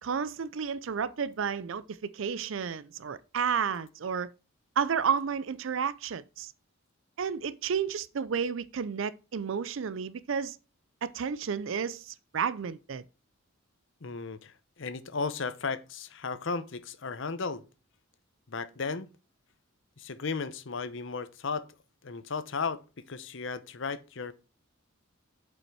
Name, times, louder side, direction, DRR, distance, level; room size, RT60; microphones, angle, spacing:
voice 1, 0.0-4.3 4.8-6.5 7.2-10.6 11.0-13.0, right 6 dB, 65° right, 0.5 m, -31 dB
voice 2, 14.0-17.6 18.5-19.1 20.0-21.6 22.0-22.8 23.1-24.3, left 4 dB, 65° left, 0.8 m, -35 dB
7.2 x 5.5 x 4.6 m
head